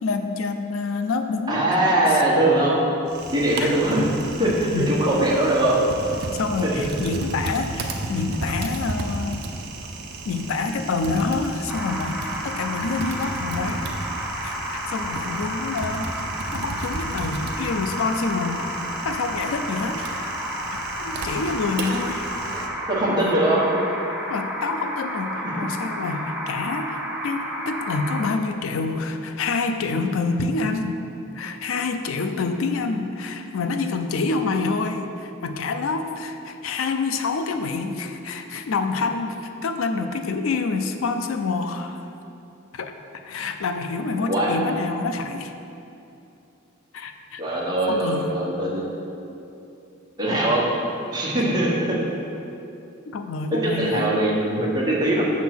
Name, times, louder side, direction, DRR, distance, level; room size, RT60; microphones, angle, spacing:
voice 1, 0.0-1.7 2.1-2.2 3.6-3.7 4.7-4.9 6.3-9.5 10.2-13.9 14.4-14.6 14.9-16.1 16.5-18.7 19.0-20.3 21.0-22.3 23.1-23.4 24.3-31.0 31.3-42.0 42.7-45.5 46.9-47.4 47.9-48.3 53.0-54.1, left 4 dB, 85° left, 7 dB, 0.4 m, -27 dB
voice 2, 1.5-2.7 3.3-4.0 4.4-4.5 4.9-5.7 6.6-6.8 22.5-22.6 22.9-23.6 44.3-44.5 47.4-48.8 50.2-50.6 51.1-52.0 53.5-55.2, right 1 dB, 20° right, -6 dB, 1.3 m, -21 dB
Typing, 3.1-22.7, right 2 dB, 55° right, 0.6 m, -34 dB
sound 1, 11.7-28.3, equal, 5° right, 0.6 m, -31 dB
7.1 x 3.7 x 6.0 m, 2.8 s
head